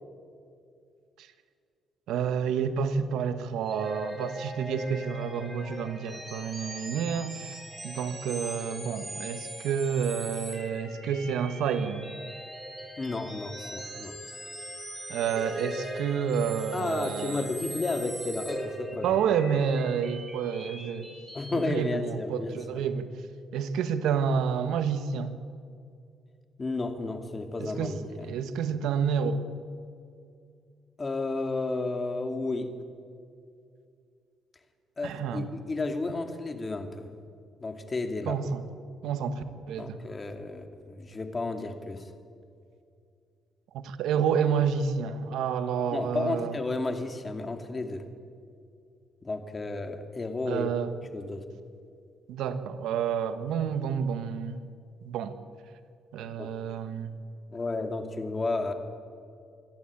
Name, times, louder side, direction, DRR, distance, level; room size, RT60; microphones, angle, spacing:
voice 1, 2.1-7.6 7.8-12.1 15.1-17.5 19.0-21.1 21.5-23.1 23.5-25.3 27.6-27.9 28.2-29.5 35.0-35.5 38.3-38.6 39.0-40.0 43.7-46.6 50.5-50.9 52.3-54.6 55.0-55.4 56.1-57.1, right 7 dB, 85° right, 1.3 m, -29 dB
sound 1, 3.6-21.5, equal, 10° right, 7.2 m, -40 dB
voice 2, 13.0-14.1 16.7-19.2 21.3-22.8 26.6-28.3 31.0-32.7 35.0-37.1 37.6-38.4 39.8-42.0 45.9-48.0 49.2-50.7 51.1-51.4 56.4-56.5 57.5-58.7, left 3 dB, 30° left, 2.4 m, -32 dB
25.5 x 12.0 x 8.8 m
cardioid pair, 90°, 0 cm